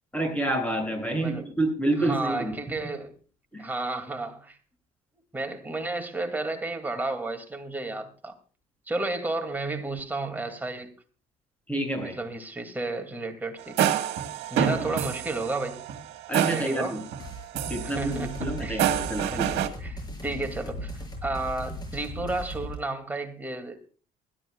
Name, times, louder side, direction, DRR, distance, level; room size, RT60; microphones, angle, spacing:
voice 1, 0.1-2.5 3.5-3.6 11.7-12.1 14.5-14.7 16.3-17.0 17.7-19.6, right 1 dB, 10° left, 7.7 m, -28 dB
voice 2, 2.0-3.1 3.6-4.6 5.3-8.3 8.9-10.9 12.0-14.0 14.5-15.8 16.5-17.0 17.8-18.8 19.3-19.4 19.8-23.8, right 2 dB, 10° right, 2.5 m, -32 dB
sound 1, 13.6-17.3 17.5-19.7, right 10 dB, 90° right, 1.6 m, -28 dB
sound 2, 17.2-22.8, equal, 25° left, 7.1 m, -37 dB
23.0 x 12.5 x 2.4 m
cardioid pair, 110°, 17 cm